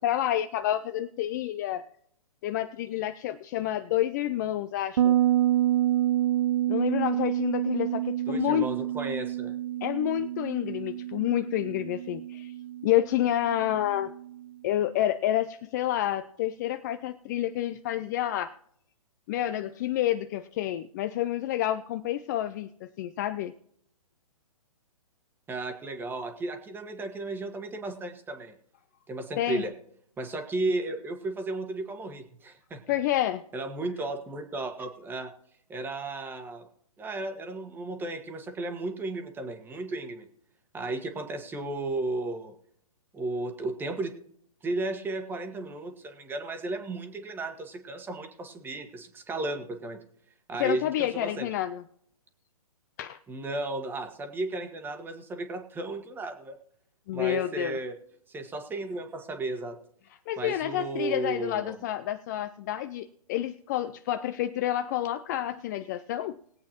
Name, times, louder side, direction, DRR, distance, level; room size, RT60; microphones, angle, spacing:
voice 1, 0.0-1.8 2.4-5.2 6.7-8.7 9.8-12.5 12.8-14.1 14.6-18.6 19.3-23.5 29.4-29.6 32.9-33.4 50.6-51.8 53.0-53.2 57.1-57.8 60.3-66.4, left 13 dB, 30° left, 10 dB, 0.4 m, -29 dB
Bass guitar, 5.0-14.3, right 12 dB, 55° right, 0.5 m, -28 dB
voice 2, 8.3-9.5 25.5-28.5 29.1-29.7 30.2-32.8 33.5-35.3 35.7-36.7 37.0-40.3 40.7-42.5 43.1-44.1 44.6-50.0 50.5-51.5 53.3-56.6 57.1-57.9 58.3-59.7 60.4-61.8, right 2 dB, 10° right, 6 dB, 1.4 m, -34 dB
20.5 x 8.2 x 3.0 m, 0.68 s
figure-of-eight pair, 130°, 19 cm